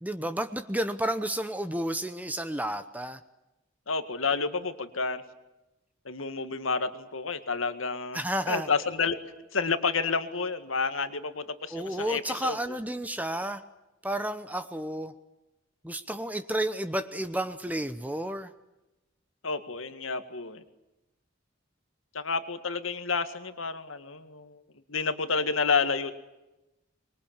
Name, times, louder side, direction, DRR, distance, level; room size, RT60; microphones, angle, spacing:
voice 1, 0.0-3.2 8.1-8.7 11.7-13.6 14.0-15.1 15.8-18.5, right 1 dB, 10° right, 10 dB, 0.9 m, -31 dB
voice 2, 3.9-5.2 6.1-9.2 9.5-12.6 19.4-20.6 22.1-24.6 24.9-26.1, left 4 dB, 90° left, 10 dB, 1.9 m, -30 dB
25.0 x 22.5 x 8.9 m, 0.98 s
head